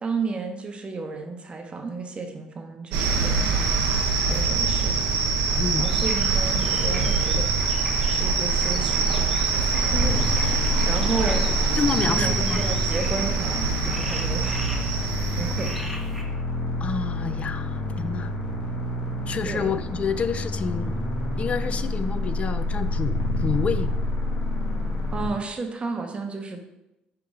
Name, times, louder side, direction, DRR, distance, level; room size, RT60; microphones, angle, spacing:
voice 1, 0.0-3.7 4.3-5.0 5.8-7.5 8.0-9.2 10.4-11.5 12.0-14.7 15.3-15.7 19.4-19.7 25.1-26.6, right 4 dB, 35° right, 4 dB, 0.7 m, -32 dB
sound 1, 2.9-15.7, right 4 dB, 90° right, 0.7 m, -24 dB
voice 2, 5.6-5.9 11.8-12.7 16.8-18.3 19.3-21.0 21.4-23.9, left 5 dB, 40° left, 12 dB, 0.3 m, -28 dB
sound 2, 5.8-16.2, equal, ahead, 1.0 m, -39 dB
sound 3, 9.9-25.3, left 1 dB, 85° left, 1.0 m, -28 dB
5.2 x 2.9 x 3.6 m, 0.89 s
supercardioid pair, 75°, 3 cm